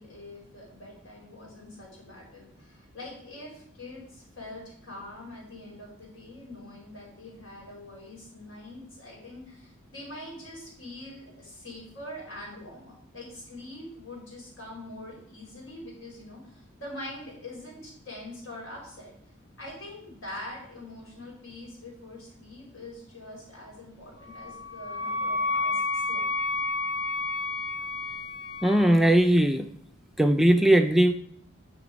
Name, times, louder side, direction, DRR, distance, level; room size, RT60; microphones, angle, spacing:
voice 1, 0.0-19.1 19.6-26.3, left 1 dB, 80° left, -3 dB, 4.9 m, -44 dB
Wind instrument woodwind instrument, 24.3-29.1, left 3 dB, 55° left, 1.7 m, -30 dB
voice 2, 28.6-29.7 30.2-31.1, right 1 dB, ahead, 6 dB, 0.4 m, -19 dB
9.8 x 6.1 x 5.2 m, 0.62 s
head